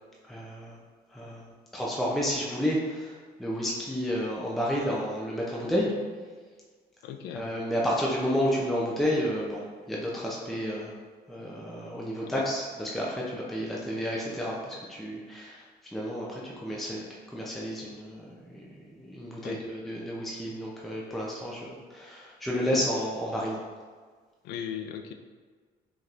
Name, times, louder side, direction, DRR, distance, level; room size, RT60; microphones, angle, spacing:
voice 1, 0.2-0.8 1.1-1.5 1.7-5.9 7.3-10.9 11.3-15.6 15.9-23.6, equal, ahead, -5 dB, 0.6 m, -31 dB
voice 2, 7.0-7.5 12.3-12.4 19.4-19.6 24.4-25.1, left 9 dB, 80° left, 6 dB, 0.4 m, -37 dB
5.0 x 3.0 x 2.5 m, 1.5 s
cardioid pair, 110°, 17 cm